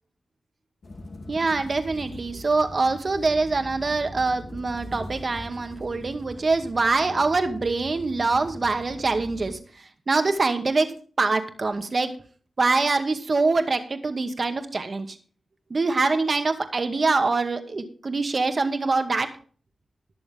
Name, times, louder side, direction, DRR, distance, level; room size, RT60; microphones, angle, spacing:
sound 1, 0.8-9.5, left 1 dB, 65° left, 2.9 m, -42 dB
voice 1, 1.3-10.9 11.2-12.1 12.6-15.2 15.7-19.3, right 3 dB, 50° right, 7 dB, 2.1 m, -24 dB
21.0 x 7.0 x 3.6 m, 0.42 s
cardioid pair, 65°, 0 cm